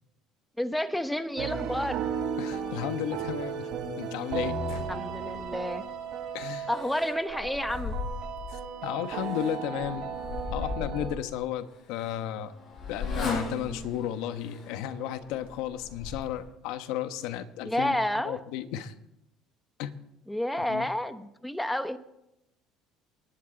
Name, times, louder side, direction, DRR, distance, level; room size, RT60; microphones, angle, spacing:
voice 1, 0.6-2.0 4.9-5.8 6.7-8.0 17.6-18.4 20.3-22.0, left 1 dB, 5° left, 10 dB, 1.0 m, -30 dB
sound 1, 1.4-11.1, right 6 dB, 65° right, 7.7 m, -35 dB
voice 2, 2.4-3.7 4.0-4.8 6.3-6.7 8.5-10.1 10.5-12.5 12.9-18.0 18.2-18.9 19.8-20.0 20.7-20.9, left 11 dB, 80° left, 10 dB, 1.2 m, -34 dB
sound 2, 4.7-5.9 6.7-8.6 9.1-11.3 12.0-12.1 12.7-13.8 14.4-14.7 15.1-16.5, left 5 dB, 60° left, 4.6 m, -39 dB
Motorcycle, 11.1-16.5, left 3 dB, 40° left, 7.0 m, -39 dB
28.5 x 11.0 x 4.0 m, 0.88 s
cardioid pair, 110°, 0 cm